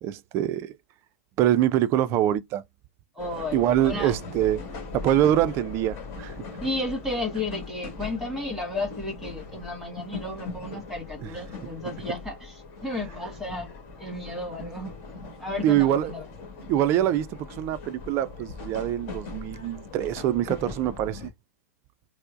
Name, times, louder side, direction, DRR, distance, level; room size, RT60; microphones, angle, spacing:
voice 1, 0.0-0.8 1.4-2.6 3.5-4.6 4.9-6.3 15.6-16.1 16.7-21.3, right 12 dB, 35° right, 0.4 m, -24 dB
voice 2, 3.1-4.2 6.6-13.7 14.0-14.9 15.4-16.2, left 2 dB, ahead, 1.8 m, -33 dB
sound 1, 3.2-21.3, left 4 dB, 40° left, 1.5 m, -40 dB
4.4 x 2.0 x 2.5 m
figure-of-eight pair, 100°, 8 cm